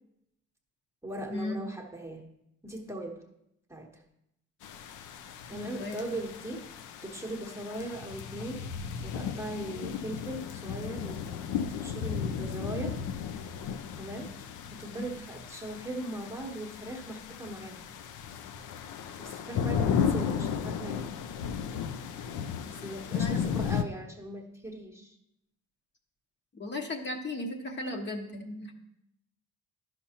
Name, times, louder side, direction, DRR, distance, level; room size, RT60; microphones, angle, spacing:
voice 1, 1.0-2.2 2.6-3.2 3.7-4.0 5.5-6.7 7.0-8.7 9.0-13.0 14.0-14.3 14.7-17.9 19.2-21.1 22.6-25.2, right 1 dB, 10° right, 1 dB, 1.0 m, -39 dB
sound 1, 4.6-23.8, left 7 dB, 80° left, 0.6 m, -35 dB
voice 2, 5.5-6.0 23.2-23.5 26.5-28.7, left 2 dB, 35° left, 2 dB, 1.1 m, -36 dB
11.0 x 5.8 x 2.8 m, 0.82 s
cardioid pair, 90°, 30 cm